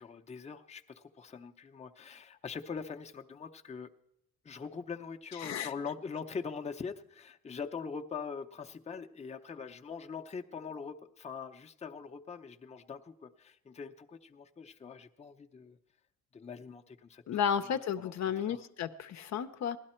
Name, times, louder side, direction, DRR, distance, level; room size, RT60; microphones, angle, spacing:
voice 1, 0.0-3.9 4.4-15.8 16.3-17.4 17.7-18.6, left 5 dB, 20° left, 4 dB, 0.6 m, -43 dB
voice 2, 5.4-5.7 17.3-19.8, left 8 dB, 65° left, 9 dB, 0.7 m, -33 dB
16.0 x 12.0 x 4.4 m, 0.78 s
cardioid pair, 90°, 30 cm